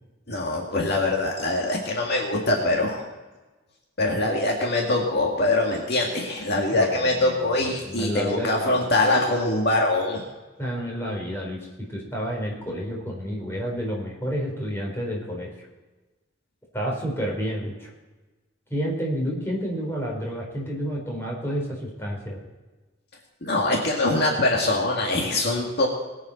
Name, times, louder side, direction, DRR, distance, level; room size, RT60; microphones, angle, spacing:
voice 1, 0.3-3.0 4.0-10.2 23.4-25.9, left 2 dB, 55° left, -1 dB, 2.1 m, -23 dB
voice 2, 6.7-8.8 10.6-11.6 11.9-15.5 16.7-17.9 18.7-22.4, equal, 10° left, -2 dB, 4.2 m, -30 dB
21.5 x 8.7 x 4.4 m, 1.2 s
head